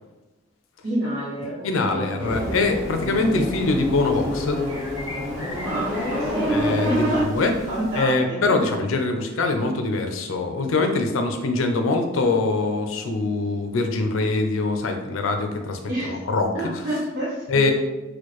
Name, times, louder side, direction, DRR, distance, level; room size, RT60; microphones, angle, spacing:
voice 1, 0.8-2.2 5.6-7.2 7.7-8.6 15.9-16.2 16.5-17.7, right 1 dB, 55° right, -11 dB, 1.0 m, -28 dB
voice 2, 1.6-4.6 6.5-7.5 8.0-15.8 16.1-16.5 17.5-17.7, left 3 dB, 75° left, 5 dB, 0.5 m, -23 dB
sound 1, 2.2-7.2, equal, 10° right, 0.7 m, -27 dB
sound 2, 2.3-8.0, equal, 80° right, 1.1 m, -37 dB
4.4 x 2.3 x 3.0 m, 1.1 s
head